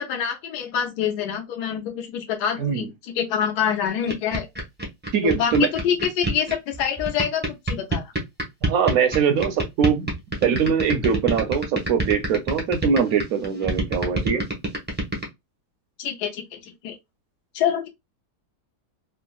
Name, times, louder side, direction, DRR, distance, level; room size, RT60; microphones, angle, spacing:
voice 1, 0.0-4.5 5.2-8.0 16.0-17.0 17.5-17.9, left 8 dB, 80° left, 1.2 m, -26 dB
sound 1, 3.9-15.2, right 3 dB, 15° right, 0.3 m, -25 dB
voice 2, 5.1-5.7 8.6-10.1 10.4-14.4, right 6 dB, 70° right, 0.9 m, -22 dB
3.5 x 2.0 x 2.3 m
omnidirectional pair, 1.7 m